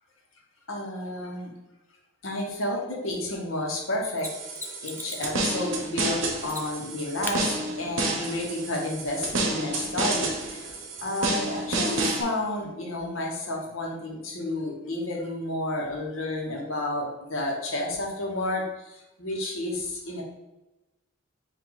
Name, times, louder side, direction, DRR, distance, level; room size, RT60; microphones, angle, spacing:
voice 1, 0.7-1.5 2.2-4.3 4.8-10.7 11.0-20.2, left 1 dB, 80° left, -1 dB, 1.1 m, -31 dB
Mechanisms, 4.2-5.4 6.5-6.9 7.2-7.4 10.1-10.2, left 2 dB, 10° left, 0.3 m, -38 dB
sound 1, 4.2-12.2, right 2 dB, 65° right, 0.8 m, -30 dB
4.8 x 2.6 x 4.0 m, 1.0 s
head